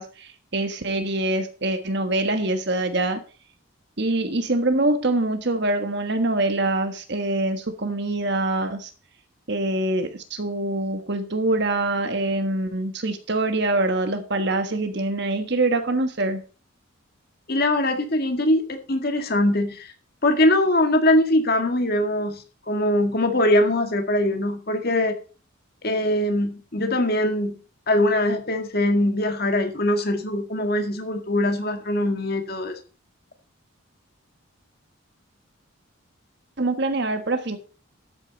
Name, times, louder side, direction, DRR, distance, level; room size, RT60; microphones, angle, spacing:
voice 1, 0.0-3.2 4.0-8.9 9.5-16.4 36.6-37.6, right 2 dB, 55° right, 7 dB, 1.5 m, -24 dB
voice 2, 17.5-19.9 20.2-25.2 25.8-27.6 27.9-32.7, left 1 dB, 50° left, 5 dB, 1.9 m, -22 dB
13.0 x 8.8 x 4.1 m, 0.37 s
head